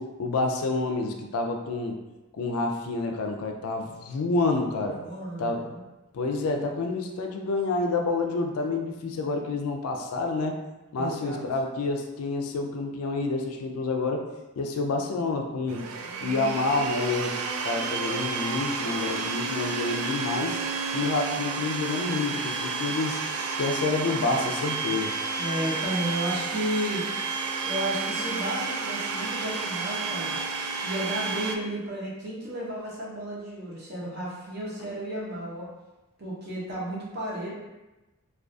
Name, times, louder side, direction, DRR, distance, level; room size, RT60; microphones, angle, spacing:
voice 1, 0.0-2.0 2.3-5.0 5.4-5.7 6.1-10.6 10.9-14.2 14.6-15.8 16.2-17.4 17.6-20.6 20.9-23.2 23.6-25.1, left 3 dB, 90° left, 3 dB, 0.4 m, -28 dB
voice 2, 4.8-5.8 11.0-11.4 25.3-27.1 27.6-30.4 30.8-35.7 36.2-37.5, right 1 dB, 45° right, -5 dB, 0.6 m, -33 dB
Domestic sounds home sounds, 15.7-31.6, right 4 dB, 90° right, 0.3 m, -31 dB
2.3 x 2.3 x 2.5 m, 1.1 s
head